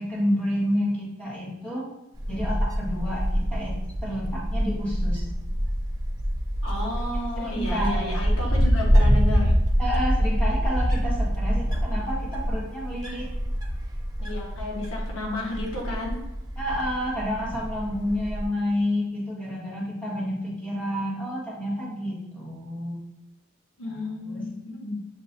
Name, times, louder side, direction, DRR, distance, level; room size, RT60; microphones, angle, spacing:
voice 1, 0.0-1.9 2.3-3.8 4.0-5.2 7.3-8.5 9.8-13.3 16.6-23.0 23.9-24.5, equal, 5° left, -8 dB, 1.4 m, -29 dB
Wind, 2.1-18.4, equal, 20° right, 0.5 m, -25 dB
voice 2, 6.6-9.6 14.2-16.2 23.8-25.0, left 1 dB, 75° left, -2 dB, 1.2 m, -32 dB
6.7 x 3.0 x 2.6 m, 0.92 s
head